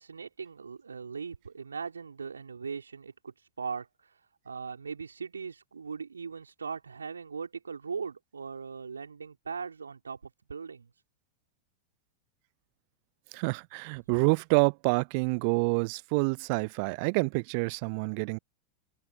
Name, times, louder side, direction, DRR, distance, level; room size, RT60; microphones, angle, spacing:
voice 1, 0.0-11.0, right 5 dB, 75° right, 4.4 m, -39 dB
voice 2, 13.3-18.4, right 34 dB, 45° right, 0.6 m, -27 dB
figure-of-eight pair, 90°, 0 cm